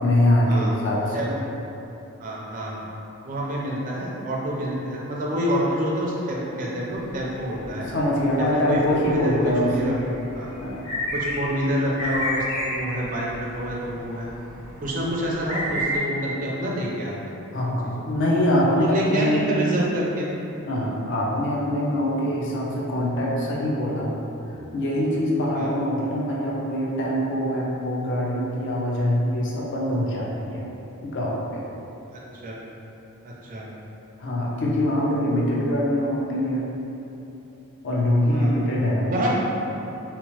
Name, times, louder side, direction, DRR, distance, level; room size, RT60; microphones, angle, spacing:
voice 1, 0.0-1.3 7.7-9.9 10.6-10.8 17.5-19.5 20.7-24.1 24.4-30.7 31.0-31.7 34.2-36.7 37.8-39.3, left 1 dB, 55° left, -4 dB, 0.5 m, -23 dB
voice 2, 2.2-2.9 3.3-7.9 8.4-9.9 10.3-10.5 11.1-14.3 14.8-17.4 18.7-20.3 25.5-25.7 32.1-32.6 33.2-33.6 38.3-38.6 39.1-39.3, equal, 40° right, -4 dB, 0.4 m, -27 dB
sound 1, 6.9-16.0, equal, 80° left, 0.9 m, -33 dB
2.9 x 2.0 x 2.9 m, 3.0 s
head